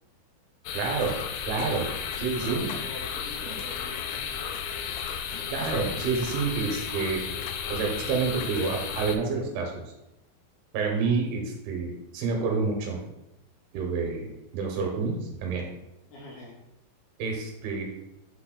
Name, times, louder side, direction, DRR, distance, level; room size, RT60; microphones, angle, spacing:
sound 1, 0.7-9.2, left 7 dB, 85° left, 2.4 m, -34 dB
voice 1, 0.7-1.2 1.5-1.9 2.2-2.7 3.5-3.6 5.5-7.2 7.7-9.8 10.7-13.0 13.7-15.7 17.2-17.9, right 4 dB, 85° right, 1 dB, 3.6 m, -28 dB
voice 2, 2.4-4.4 16.1-16.6, left 2 dB, 65° left, -2 dB, 2.6 m, -45 dB
9.0 x 6.2 x 2.2 m, 0.89 s
omnidirectional pair, 5.4 m